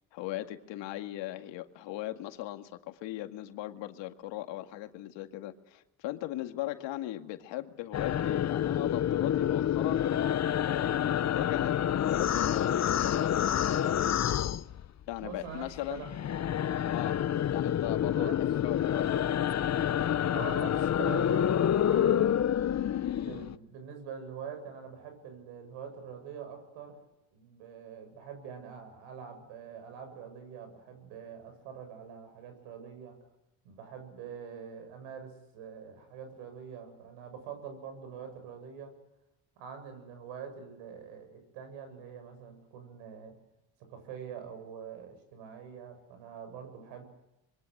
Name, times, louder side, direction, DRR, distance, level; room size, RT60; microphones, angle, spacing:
voice 1, 0.1-10.1 10.6-13.6 15.1-16.0 16.9-17.2 17.5-19.3, left 15 dB, 80° left, 7 dB, 2.1 m, -38 dB
sound 1, 7.9-15.3 15.5-23.5, left 10 dB, 35° left, 0.9 m, -28 dB
voice 2, 15.2-16.1 18.2-18.4 20.3-22.4 23.1-27.0 27.3-33.2 33.6-38.9 39.6-43.4 43.8-47.0, right 7 dB, 90° right, 7 dB, 8.0 m, -44 dB
26.0 x 23.0 x 7.9 m, 0.93 s
supercardioid pair, 90°, 44 cm